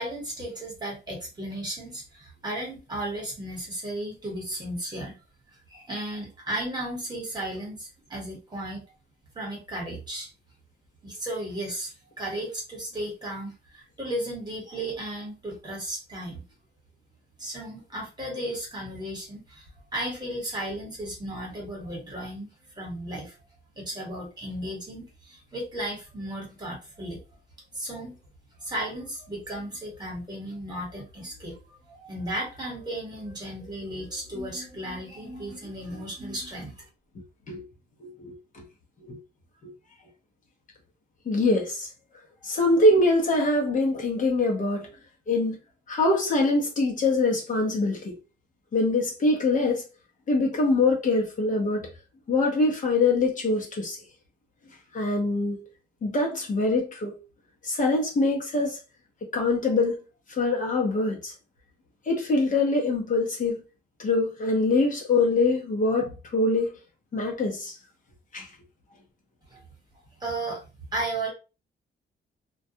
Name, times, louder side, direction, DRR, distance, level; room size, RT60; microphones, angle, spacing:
voice 1, 0.0-5.2 5.7-8.8 9.3-10.3 11.0-16.4 17.4-19.7 19.9-23.4 23.8-27.2 27.7-28.2 28.6-31.6 31.9-36.9 69.5-69.6 70.2-70.6 70.9-71.3, right 1 dB, 20° right, 1.2 m, -35 dB
voice 2, 38.0-38.6 39.0-39.2 39.6-39.7 41.3-41.9 42.4-44.9 45.3-45.6 45.9-48.2 48.7-49.8 50.3-51.9 52.3-54.0 54.9-55.6 56.0-57.2 57.6-58.8 59.3-60.0 60.3-61.3 62.1-63.6 64.0-66.8 67.1-67.8 68.3-68.5, left 2 dB, 45° left, 0.7 m, -24 dB
2.2 x 2.2 x 2.7 m
cardioid pair, 145°, 19 cm